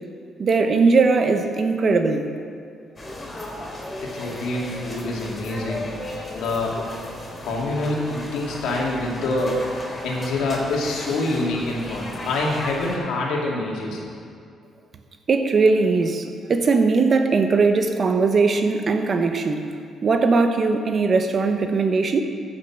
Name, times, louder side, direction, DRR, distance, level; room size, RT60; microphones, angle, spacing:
voice 1, 0.4-2.3 15.3-19.7 20.0-22.2, right 4 dB, 45° right, 7 dB, 1.0 m, -19 dB
sound 1, 3.0-13.0, left 1 dB, 25° left, 3.4 m, -35 dB
voice 2, 4.0-5.8 6.3-6.8 7.4-9.6 10.0-14.0, left 2 dB, 85° left, -3 dB, 2.4 m, -26 dB
15.0 x 6.3 x 6.0 m, 2.3 s
cardioid pair, 90°, 0 cm